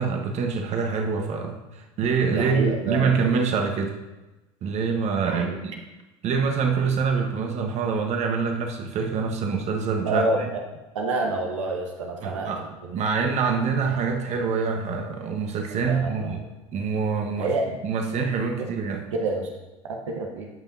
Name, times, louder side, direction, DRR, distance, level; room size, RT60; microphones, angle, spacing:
voice 1, 0.0-3.9 4.6-5.7 6.2-10.5 12.2-12.7 12.9-16.4 16.7-17.5 17.8-19.0, right 5 dB, 45° right, 4 dB, 1.3 m, -25 dB
voice 2, 2.2-3.2 5.2-5.6 10.0-10.3 10.9-12.9 15.7-16.5 17.3-17.7 19.2-19.5 19.9-20.5, right 2 dB, 80° right, 1 dB, 1.2 m, -28 dB
16.5 x 5.6 x 2.7 m, 1.1 s
hypercardioid pair, 80°, 16 cm